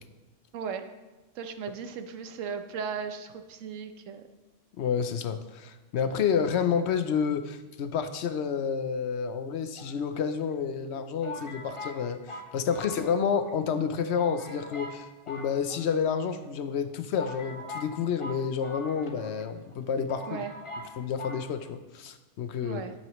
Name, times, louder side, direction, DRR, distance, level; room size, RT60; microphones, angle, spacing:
voice 1, 0.5-0.8 1.3-4.2 20.3-20.5 22.6-22.9, right 6 dB, 85° right, 8 dB, 1.1 m, -36 dB
voice 2, 4.8-20.4 21.0-22.8, left 7 dB, 65° left, 10 dB, 0.8 m, -29 dB
sound 1, 9.8-10.5 11.2-13.5 13.8-13.9 14.2-15.0 15.3-16.2 16.8-16.9 17.1-19.4 19.7-19.8 20.1-20.9 21.2-21.4, left 2 dB, 30° left, 0.8 m, -42 dB
10.5 x 8.5 x 3.1 m, 1.2 s
omnidirectional pair, 1.3 m